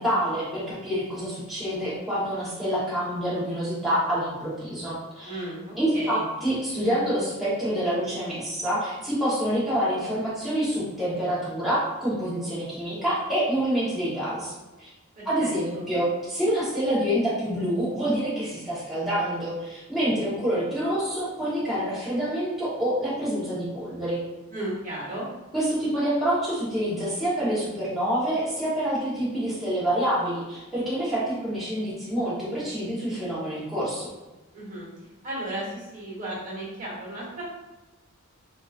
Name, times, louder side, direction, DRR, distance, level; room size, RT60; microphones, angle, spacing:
voice 1, 0.0-5.4 5.8-14.5 14.8-14.9 15.2-24.2 25.5-34.1, equal, ahead, -11 dB, 1.0 m, -27 dB
voice 2, 5.2-6.2 15.2-15.8 24.5-25.3 34.5-34.9 35.2-37.4, right 1 dB, 40° right, -6 dB, 1.2 m, -35 dB
3.7 x 2.6 x 2.4 m, 1.1 s
head